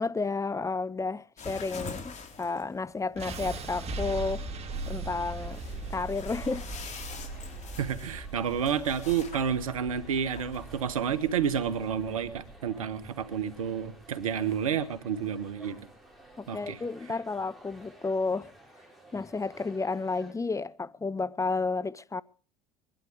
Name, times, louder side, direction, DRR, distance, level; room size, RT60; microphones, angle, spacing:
voice 1, 0.0-4.4 4.9-5.6 5.9-6.7 16.4-18.5 19.1-22.2, left 3 dB, 20° left, 0.7 m, -31 dB
sound 1, 1.4-12.6, left 4 dB, 40° left, 3.7 m, -46 dB
sound 2, 3.2-15.2, right 3 dB, 40° right, 3.6 m, -40 dB
sound 3, 5.1-20.3, right 1 dB, ahead, 6.3 m, -54 dB
voice 2, 7.8-15.9 16.5-16.8, right 8 dB, 80° right, 1.4 m, -30 dB
22.5 x 11.5 x 5.0 m
hypercardioid pair, 65°, 17 cm